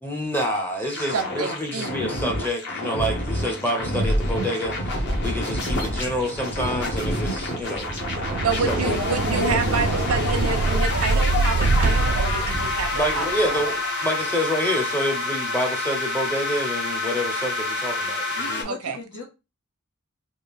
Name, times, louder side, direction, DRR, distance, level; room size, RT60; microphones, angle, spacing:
voice 1, 0.0-7.9 8.6-9.0 12.9-18.7, equal, 10° left, 0.6 m, -28 dB
sound 1, 0.9-18.6, left 1 dB, 55° left, 1.0 m, -27 dB
voice 2, 1.1-1.9 8.4-13.2 13.5-13.6 18.6-19.0, right 4 dB, 90° right, 0.7 m, -28 dB
sound 2, 7.7-13.4, right 3 dB, 40° right, 0.3 m, -24 dB
voice 3, 18.4-19.2, left 3 dB, 85° left, 1.4 m, -37 dB
3.3 x 2.4 x 3.4 m
head